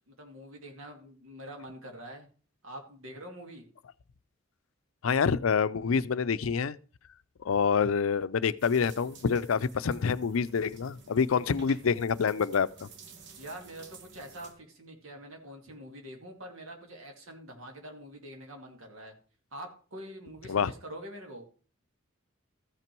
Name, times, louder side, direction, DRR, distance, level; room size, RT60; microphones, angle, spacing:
voice 1, 0.1-2.3 2.6-3.6 13.4-19.1 19.5-21.4, right 1 dB, 85° right, 2.3 m, -45 dB
voice 2, 5.0-6.8 7.4-12.9 20.5-20.7, left 6 dB, 85° left, 0.5 m, -27 dB
sound 1, 8.6-14.5, right 4 dB, 60° right, 1.3 m, -53 dB
14.0 x 6.0 x 4.5 m
head